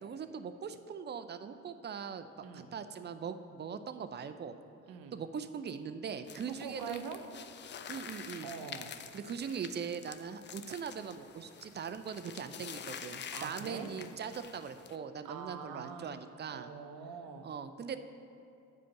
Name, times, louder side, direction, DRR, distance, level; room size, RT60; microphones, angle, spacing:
voice 1, 0.0-2.3 2.5-4.5 5.1-7.0 7.9-8.5 9.1-16.7 17.4-18.0, right 6 dB, 25° right, 10 dB, 0.5 m, -41 dB
voice 2, 4.9-5.2 6.6-7.2 8.4-9.0 13.3-13.9 15.2-16.1 16.5-17.5, right 6 dB, 65° right, 6 dB, 0.8 m, -44 dB
sound 1, 6.3-15.0, left 7 dB, 30° left, 0.4 m, -48 dB
6.6 x 5.1 x 7.1 m, 2.6 s
figure-of-eight pair, 40°, 39 cm